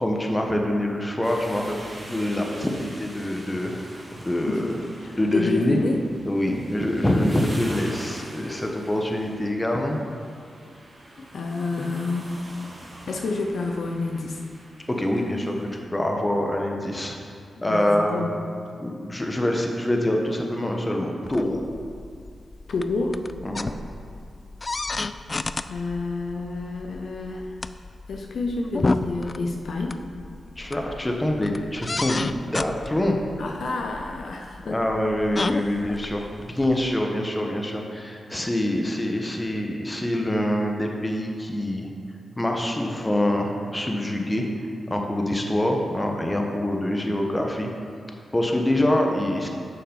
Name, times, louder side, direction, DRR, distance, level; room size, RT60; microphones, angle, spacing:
voice 1, 0.0-1.7 2.1-3.8 4.2-4.8 5.2-5.8 6.3-10.0 14.9-17.1 17.6-18.3 18.8-21.6 23.4-23.8 30.6-33.2 34.6-41.9 42.4-44.4 44.9-47.7 48.3-49.5, left 1 dB, 20° left, 1 dB, 1.2 m, -25 dB
sound 1, 1.2-15.8, right 1 dB, 40° right, 1.9 m, -43 dB
voice 2, 5.0-6.0 6.5-6.6 11.3-12.4 13.1-14.4 17.6-18.4 22.7-23.2 25.7-27.5 28.1-30.0 33.4-34.8, left 3 dB, 75° left, 2 dB, 0.7 m, -29 dB
sound 2, 21.2-37.0, left 3 dB, 35° left, 0.3 m, -33 dB
7.0 x 5.7 x 5.5 m, 2.3 s
cardioid pair, 50°, 0 cm